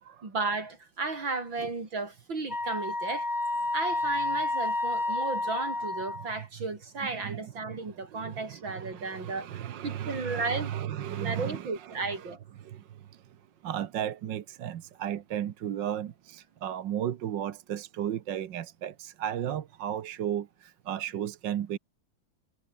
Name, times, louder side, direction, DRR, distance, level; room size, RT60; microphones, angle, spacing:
voice 1, 0.2-3.3 3.7-9.5 9.8-10.7 11.2-12.4, right 3 dB, 85° right, 5.5 m, -34 dB
Wind instrument woodwind instrument, 2.5-6.4, left 2 dB, 15° left, 0.9 m, -30 dB
voice 2, 4.9-5.3 7.2-12.3 12.6-13.2 13.6-21.8, right 10 dB, 70° right, 1.7 m, -35 dB
omnidirectional pair, 2.1 m